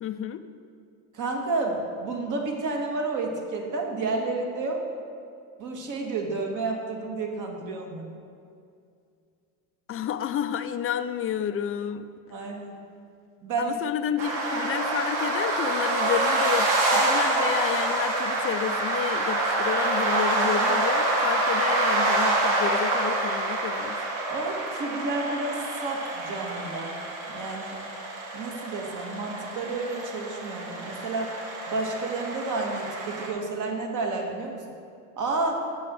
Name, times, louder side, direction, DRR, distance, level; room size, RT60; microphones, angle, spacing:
voice 1, 0.0-0.4 9.9-12.1 13.6-24.0, left 9 dB, 35° left, 10 dB, 0.5 m, -30 dB
voice 2, 1.1-4.8 5.6-8.1 12.3-12.7 13.4-13.8 24.3-27.0 27.3-27.8 28.3-31.3 31.7-34.6 35.1-35.6, right 3 dB, 45° right, 1 dB, 1.9 m, -30 dB
sound 1, 14.2-33.3, right 2 dB, 80° right, 2.0 m, -27 dB
8.4 x 6.9 x 6.4 m, 2.4 s
supercardioid pair, 105°, 42 cm